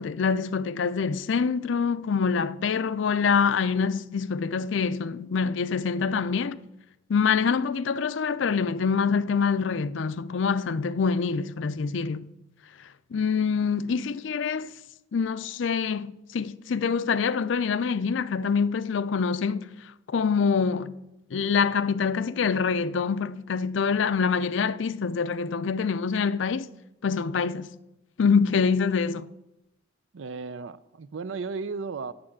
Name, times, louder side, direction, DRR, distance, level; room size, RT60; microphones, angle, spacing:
voice 1, 0.0-6.6 7.1-12.3 13.1-14.7 15.1-19.7 20.1-21.0 21.3-26.7 27.0-27.7 28.2-29.3, left 5 dB, 80° left, 0.5 m, -25 dB
voice 2, 30.1-32.1, right 4 dB, 85° right, 0.5 m, -34 dB
8.7 x 7.6 x 7.2 m
head